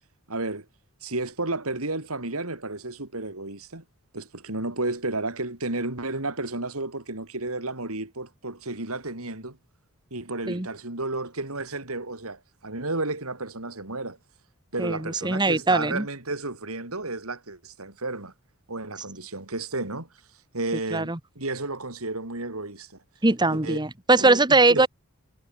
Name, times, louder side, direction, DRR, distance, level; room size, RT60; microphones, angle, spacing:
voice 1, 0.3-0.7 1.0-3.8 4.1-9.6 10.1-14.2 14.7-18.3 18.7-20.1 20.5-23.0 23.5-23.8 24.2-24.9, right 2 dB, 80° right, 4.4 m, -32 dB
voice 2, 14.8-16.1 20.9-21.2 23.2-24.9, right 2 dB, 20° right, 1.4 m, -21 dB
head